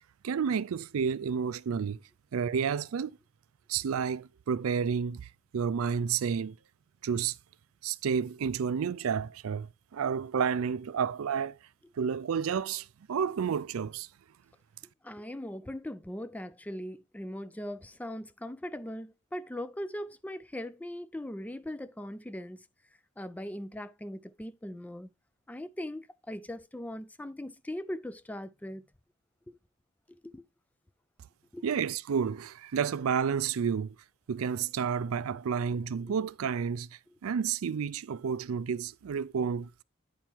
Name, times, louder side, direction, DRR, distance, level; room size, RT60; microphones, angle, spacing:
voice 1, 0.2-2.0 2.3-3.1 3.7-5.3 5.5-6.6 7.0-7.4 7.8-11.6 12.0-14.1 31.6-34.0 34.3-36.9 37.2-39.8, right 6 dB, 80° right, 0.4 m, -30 dB
voice 2, 15.0-22.7 23.2-25.1 25.5-28.8 29.5-29.6 30.1-30.5 31.5-31.6 36.1-36.2, left 1 dB, 5° left, 0.3 m, -40 dB
9.2 x 4.5 x 4.4 m
head